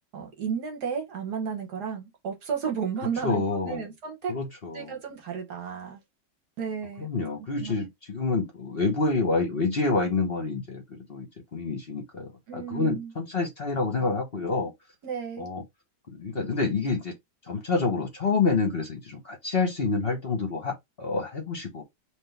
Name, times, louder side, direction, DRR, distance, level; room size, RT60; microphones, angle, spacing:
voice 1, 0.1-4.4 4.7-6.0 6.6-7.1 7.4-7.9 12.5-13.1 15.0-15.5, right 7 dB, 65° right, 1.8 m, -33 dB
voice 2, 3.2-3.8 4.3-4.9 7.0-14.7 15.4-15.6 16.1-17.1 17.5-21.8, left 3 dB, 40° left, 1.1 m, -28 dB
3.9 x 3.0 x 3.4 m
omnidirectional pair, 1.9 m